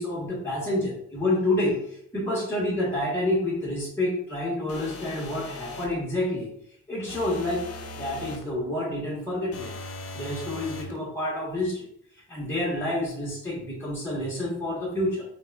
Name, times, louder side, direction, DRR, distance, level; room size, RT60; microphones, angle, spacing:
voice 1, 0.0-6.5 6.9-7.6 7.9-9.8 10.1-11.9 12.1-15.2, left 1 dB, 10° left, -7 dB, 1.4 m, -28 dB
sound 1, 4.7-6.0 7.1-8.5 9.5-11.0, left 2 dB, 55° left, 0.6 m, -39 dB
4.0 x 2.4 x 2.4 m, 0.72 s
cardioid pair, 90°, 30 cm